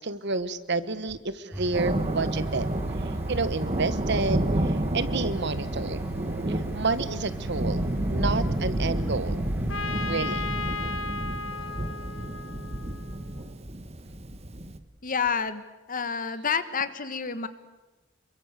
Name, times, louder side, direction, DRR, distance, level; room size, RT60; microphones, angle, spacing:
voice 1, 0.0-2.7 3.3-6.0 6.5-9.4 10.0-10.5, right 3 dB, 60° right, 14 dB, 1.4 m, -30 dB
sound 1, 1.5-9.9, right 2 dB, 10° right, 3.2 m, -37 dB
Thunder, 1.7-14.8, right 1 dB, 35° right, 1.5 m, -30 dB
Trumpet, 9.7-13.4, left 4 dB, 75° left, 1.6 m, -35 dB
voice 2, 15.0-15.6 15.9-17.5, left 6 dB, 45° left, 12 dB, 1.6 m, -28 dB
27.5 x 23.5 x 8.3 m, 1.1 s
head